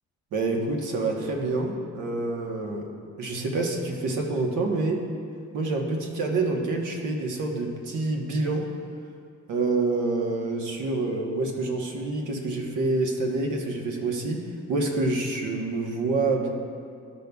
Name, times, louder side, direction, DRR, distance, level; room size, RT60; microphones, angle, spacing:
voice 1, 0.3-2.9 3.2-5.0 5.5-8.7 9.5-14.4 14.7-16.5, right 3 dB, 80° right, 1 dB, 1.1 m, -27 dB
13.5 x 5.4 x 2.3 m, 2.4 s
cardioid pair, 90°, 30 cm